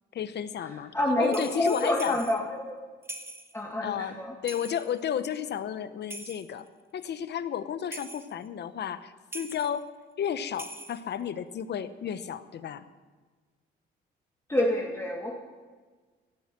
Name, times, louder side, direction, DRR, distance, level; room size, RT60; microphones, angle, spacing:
voice 1, 0.1-0.9 1.2-2.2 3.8-4.2 4.4-6.7 6.9-9.9 10.2-12.8, left 9 dB, 60° left, 13 dB, 1.0 m, -32 dB
voice 2, 0.9-2.6 3.5-4.3 14.5-15.3, left 1 dB, 15° left, -1 dB, 2.0 m, -27 dB
sound 1, 1.2-2.4 3.0-3.6 4.5-5.0 6.1-6.7 7.9-8.3 9.3-9.8 10.5-11.1, right 2 dB, 10° right, 1.3 m, -42 dB
16.5 x 9.3 x 7.5 m, 1.4 s
cardioid pair, 90°, 20 cm